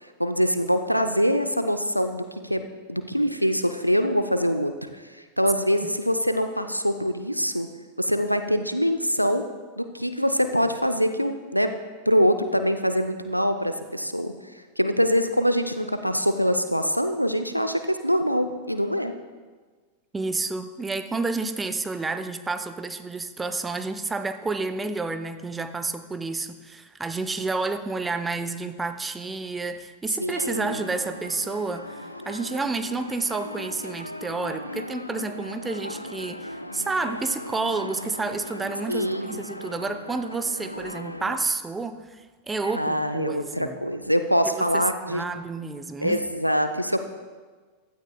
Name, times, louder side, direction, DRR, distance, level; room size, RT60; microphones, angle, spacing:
voice 1, 0.0-4.7 5.4-7.7 8.0-9.4 9.8-11.7 12.1-14.3 14.8-19.1 30.2-30.8 38.9-39.4 42.7-45.3 46.0-47.0, equal, 90° right, 8 dB, 0.6 m, -24 dB
voice 2, 20.1-43.8 44.6-46.2, right 3 dB, 10° right, 10 dB, 0.6 m, -30 dB
sound 1, 30.3-41.4, left 1 dB, 85° left, 0.5 m, -38 dB
15.5 x 12.0 x 2.3 m, 1.4 s
figure-of-eight pair, 90°, 0 cm